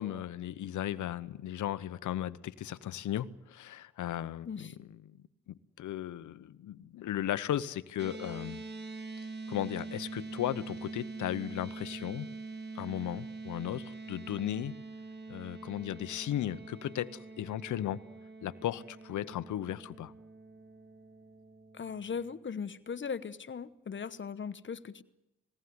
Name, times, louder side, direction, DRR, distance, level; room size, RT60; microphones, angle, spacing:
voice 1, 0.0-4.7 5.5-8.6 9.5-12.3 12.7-14.8 15.3-18.0 18.4-20.1, left 12 dB, 70° left, 16 dB, 0.9 m, -36 dB
voice 2, 4.4-4.8 21.7-25.0, left 6 dB, 40° left, 14 dB, 1.2 m, -38 dB
sound 1, 8.0-22.4, right 3 dB, 35° right, 1.5 m, -45 dB
20.5 x 17.0 x 9.6 m, 0.89 s
cardioid pair, 75°, 31 cm